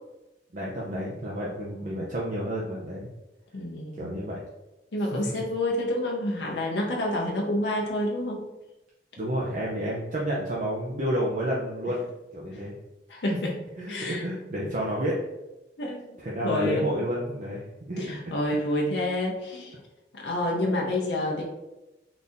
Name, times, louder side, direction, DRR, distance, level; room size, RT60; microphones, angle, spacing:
voice 1, 0.5-3.1 4.0-4.4 9.2-12.0 12.3-12.7 13.8-15.2 16.2-18.2, equal, 45° right, -5 dB, 0.6 m, -30 dB
voice 2, 3.5-4.2 4.9-8.4 12.5-12.6 13.1-13.5 13.9-14.2 15.8-16.2 16.4-16.9 18.0-19.8 20.1-21.4, left 1 dB, 70° left, -1 dB, 0.6 m, -28 dB
4.0 x 2.7 x 3.5 m, 1.0 s
head